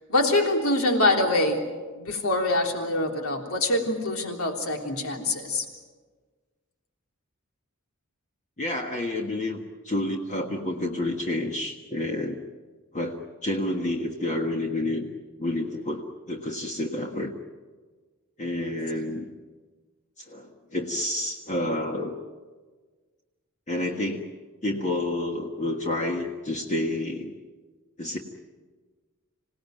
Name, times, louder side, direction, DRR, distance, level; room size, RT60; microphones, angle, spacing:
voice 1, 0.1-1.6 2.0-5.7, left 2 dB, 70° left, 3 dB, 3.5 m, -24 dB
voice 2, 8.6-12.4 12.9-15.1 15.4-17.3 18.4-19.3 20.2-22.2 23.7-24.2 24.6-27.3 28.0-28.2, left 1 dB, 35° left, 2 dB, 1.6 m, -29 dB
27.0 x 18.0 x 9.3 m, 1.4 s
head